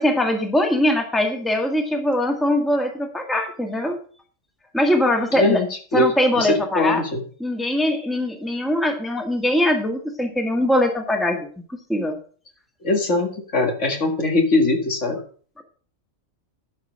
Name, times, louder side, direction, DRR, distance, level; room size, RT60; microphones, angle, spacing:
voice 1, 0.0-4.0 4.7-5.6 5.9-7.0 7.4-11.5 11.9-12.2, left 1 dB, ahead, 3 dB, 1.7 m, -21 dB
voice 2, 5.3-5.7 5.9-6.1 6.4-7.2 12.8-15.2, left 2 dB, 65° left, 3 dB, 2.3 m, -21 dB
11.5 x 5.4 x 6.4 m, 0.43 s
omnidirectional pair, 1.4 m